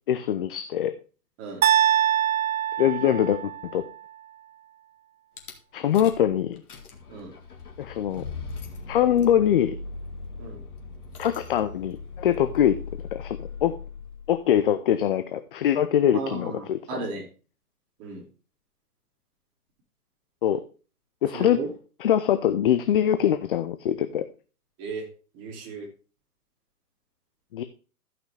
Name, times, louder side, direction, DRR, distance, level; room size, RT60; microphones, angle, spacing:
voice 1, 0.1-0.9 2.8-3.8 5.7-6.6 7.8-8.2 8.9-9.8 11.2-12.8 13.1-13.8 14.3-16.8 20.4-20.6 21.2-21.6 22.0-24.3 27.5-27.6, left 10 dB, 35° left, 10 dB, 0.5 m, -23 dB
sound 1, 1.6-3.8, right 11 dB, 65° right, 0.7 m, -23 dB
Rattle / Car / Engine starting, 5.4-5.5 5.9-6.3 6.6-14.3, left 4 dB, 70° left, 2.2 m, -39 dB
voice 2, 16.1-17.3 18.0-18.3 21.3-21.7 24.8-25.1 25.3-25.9, right 3 dB, 30° right, 1 dB, 2.7 m, -34 dB
14.0 x 5.9 x 3.3 m, 0.36 s
hypercardioid pair, 130°, 46 cm